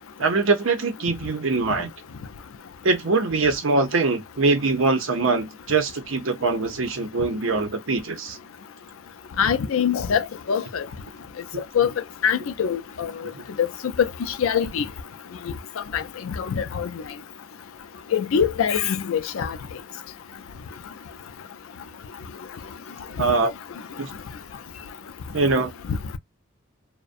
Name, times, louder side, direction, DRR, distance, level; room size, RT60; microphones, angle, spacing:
voice 1, 0.2-1.9 2.8-8.4 11.5-11.6 13.3-13.4 23.2-23.5 24.0-24.1 25.3-25.7, right 3 dB, 80° right, 0.7 m, -23 dB
voice 2, 9.4-10.8 11.7-11.9 12.2-13.1 13.6-13.7 14.4-14.8 15.9-16.9 18.1-19.6 25.9-26.0, left 7 dB, 85° left, 0.4 m, -23 dB
2.4 x 2.1 x 2.5 m
head